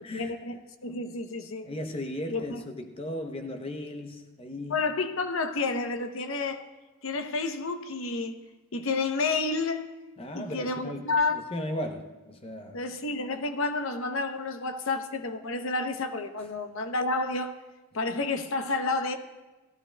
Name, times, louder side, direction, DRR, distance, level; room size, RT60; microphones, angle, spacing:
voice 1, 0.1-1.7 2.3-2.6 4.7-6.7 7.0-8.4 8.7-9.9 10.3-11.4 12.7-17.5 17.9-19.2, left 3 dB, 65° left, 0.7 m, -30 dB
voice 2, 1.6-4.8 10.2-12.8, left 1 dB, 25° left, 0.6 m, -36 dB
18.0 x 13.0 x 2.2 m
head